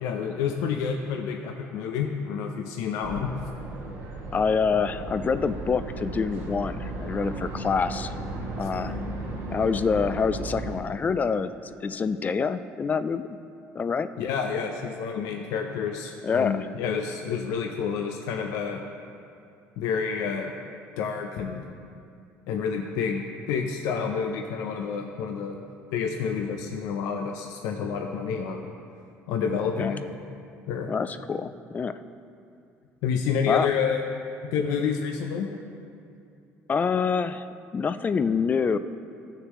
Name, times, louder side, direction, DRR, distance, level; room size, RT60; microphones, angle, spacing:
voice 1, 0.0-3.3 14.2-18.8 19.8-20.5 21.0-21.6 22.5-23.2 23.5-25.6 25.9-28.7 29.3-30.0 30.7-30.9 33.0-34.0 34.5-35.5, left 6 dB, 80° left, 2 dB, 0.6 m, -29 dB
sound 1, 3.0-10.8, right 2 dB, 80° right, 2.1 m, -35 dB
voice 2, 4.3-8.1 8.6-8.9 9.5-11.5 11.8-13.2 13.7-14.1 16.2-16.7 29.8-29.9 30.9-32.0 33.5-33.7 36.7-37.5 37.7-38.8, left 5 dB, 30° left, 12 dB, 0.4 m, -26 dB
14.5 x 6.6 x 3.1 m, 2.5 s
supercardioid pair, 95°, 6 cm